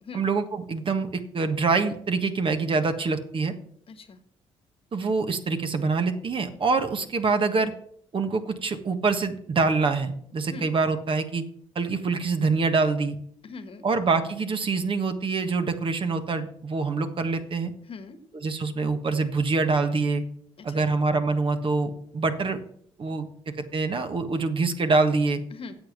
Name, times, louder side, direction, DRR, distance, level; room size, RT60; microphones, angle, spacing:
voice 1, 0.1-3.5 4.9-7.7 8.1-11.4 11.7-13.2 13.8-17.7 18.4-20.2 20.6-22.6 23.0-23.3 23.7-25.4, right 4 dB, 45° right, 7 dB, 1.5 m, -25 dB
voice 2, 3.9-4.2 10.5-10.7 13.4-13.9 17.9-18.2 20.6-20.9 25.5-25.7, left 4 dB, 50° left, 10 dB, 1.5 m, -41 dB
8.7 x 7.5 x 8.0 m, 0.66 s
supercardioid pair, 60°, 12 cm